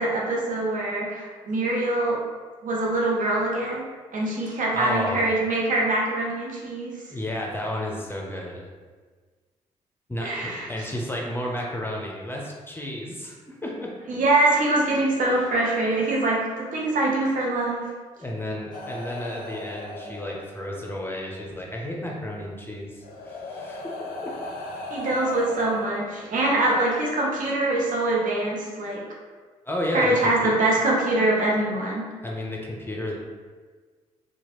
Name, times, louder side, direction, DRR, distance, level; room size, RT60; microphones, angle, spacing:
voice 1, 0.0-2.2 2.6-6.9 10.2-10.7 14.1-17.8 24.9-29.0 29.9-32.0, right 2 dB, 55° right, -3 dB, 0.8 m, -24 dB
voice 2, 4.7-5.2 7.1-8.6 10.1-13.9 15.3-15.4 18.2-24.3 26.6-26.7 29.6-30.5 32.2-33.1, left 1 dB, 15° left, -2 dB, 0.7 m, -32 dB
sound 1, 18.7-20.9 22.2-22.3 23.0-26.6 27.7-27.9, left 2 dB, 65° left, 0.4 m, -37 dB
2.8 x 2.4 x 3.0 m, 1.4 s
hypercardioid pair, 45°, 16 cm